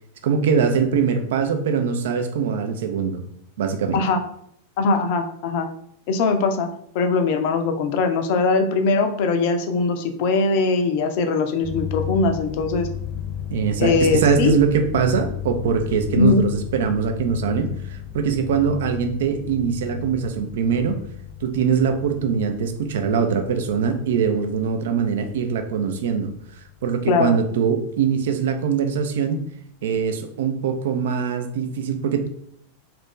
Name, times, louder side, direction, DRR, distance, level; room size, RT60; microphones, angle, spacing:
voice 1, 0.2-3.2 3.6-4.0 13.5-21.0 21.4-26.3 26.8-29.4 29.8-32.3, right 6 dB, 60° right, 6 dB, 0.4 m, -22 dB
voice 2, 4.8-5.7 6.1-6.7 6.9-12.9 13.8-14.6 16.2-16.5 27.1-27.3, left 4 dB, 45° left, 6 dB, 0.4 m, -21 dB
sound 1, 11.6-27.7, left 10 dB, 10° left, 0.7 m, -35 dB
2.9 x 2.5 x 3.6 m, 0.68 s
figure-of-eight pair, 90°, 0 cm